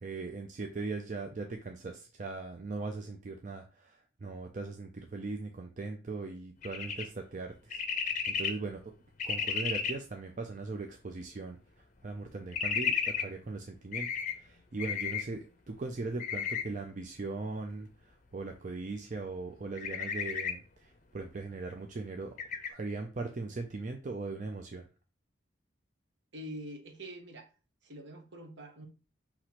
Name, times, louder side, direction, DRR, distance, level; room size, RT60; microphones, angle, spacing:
voice 1, 0.0-8.9 9.2-14.1 14.3-22.4 22.7-24.9, right 3 dB, 40° right, 0.4 m, -39 dB
sound 1, 6.6-7.1 7.7-8.5 9.2-9.9 12.5-13.2 13.9-14.3 14.8-15.2 16.2-16.6 19.8-20.5 22.4-22.7, left 7 dB, 40° left, 0.6 m, -33 dB
voice 2, 26.3-27.5 27.8-28.9, equal, 70° right, 1.1 m, -45 dB
5.9 x 2.9 x 3.0 m
head